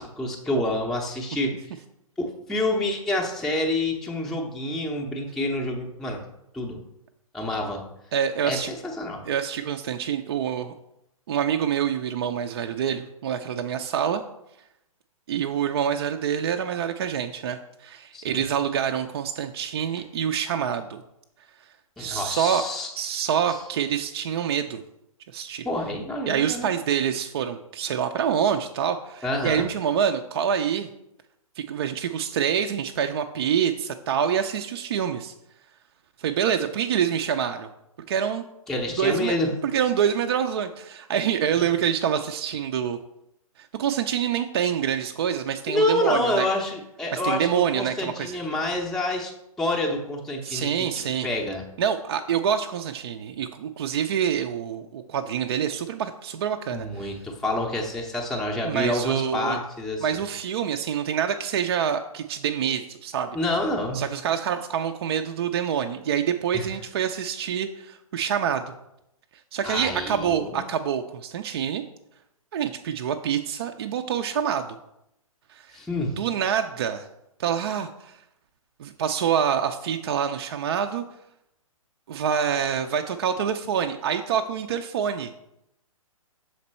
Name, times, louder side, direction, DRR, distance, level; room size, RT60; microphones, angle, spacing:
voice 1, 0.0-1.8 2.2-6.2 6.5-6.8 7.3-7.8 8.4-9.2 18.1-18.5 22.0-23.2 23.5-23.6 25.6-26.7 29.2-29.7 38.7-39.5 41.6-41.7 45.7-49.3 49.6-51.6 56.7-60.2 63.3-64.0 66.5-66.7 69.6-70.6 75.7-76.2, left 1 dB, ahead, -2 dB, 0.6 m, -28 dB
voice 2, 8.1-8.7 9.3-10.7 11.3-14.2 15.3-21.0 22.0-22.6 23.0-24.8 25.3-25.7 26.3-30.9 31.6-35.3 36.2-37.7 38.1-38.4 39.0-39.3 39.6-43.0 43.6-46.5 47.1-48.4 50.4-51.3 51.8-57.1 58.6-59.6 60.0-63.4 63.9-68.6 69.5-71.8 72.5-74.7 75.5-75.7 76.2-77.1 77.4-78.2 78.8-81.0 82.1-85.3, right 8 dB, 45° right, 5 dB, 0.4 m, -26 dB
6.5 x 4.3 x 4.2 m, 0.82 s
figure-of-eight pair, 125°, 18 cm